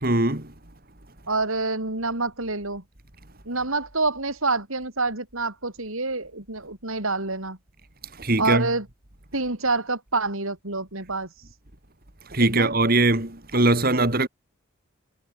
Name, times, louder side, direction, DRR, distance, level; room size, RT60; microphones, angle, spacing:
voice 1, 0.0-0.5 8.2-8.7 12.3-14.3, right 2 dB, 45° right, 3.1 m, -21 dB
voice 2, 1.3-2.8 3.5-7.6 8.4-8.9 9.3-11.3 12.4-12.7, right 3 dB, 75° right, 5.3 m, -27 dB
head